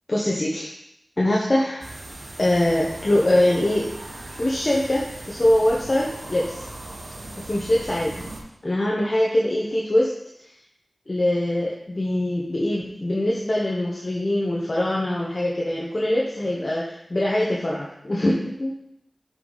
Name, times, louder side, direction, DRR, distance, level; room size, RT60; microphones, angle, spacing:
voice 1, 0.1-0.7 1.2-1.9 2.4-3.9 4.4-6.7 7.5-8.3 8.6-10.1 11.1-18.7, left 1 dB, 45° left, -3 dB, 1.1 m, -23 dB
sound 1, 1.8-8.4, right 2 dB, 75° right, 1.1 m, -38 dB
7.7 x 4.9 x 4.0 m, 0.78 s
wide cardioid pair, 50°, 0 cm